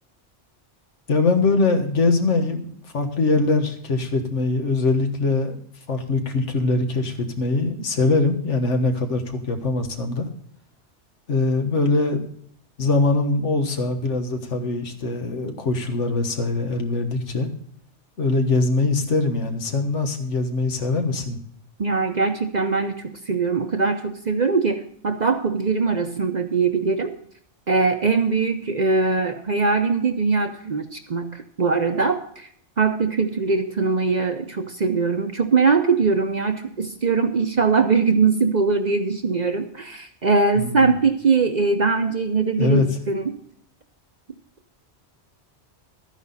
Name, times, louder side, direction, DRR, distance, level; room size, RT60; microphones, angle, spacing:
voice 1, 1.1-5.6 5.9-10.3 11.3-12.3 12.8-17.5 18.2-21.4 40.5-40.9 42.6-42.8, left 3 dB, 80° left, 6 dB, 1.7 m, -22 dB
voice 2, 21.8-27.1 27.7-32.5 32.8-43.3, right 4 dB, 45° right, 6 dB, 0.8 m, -21 dB
12.5 x 10.0 x 4.0 m, 0.63 s
omnidirectional pair, 1.2 m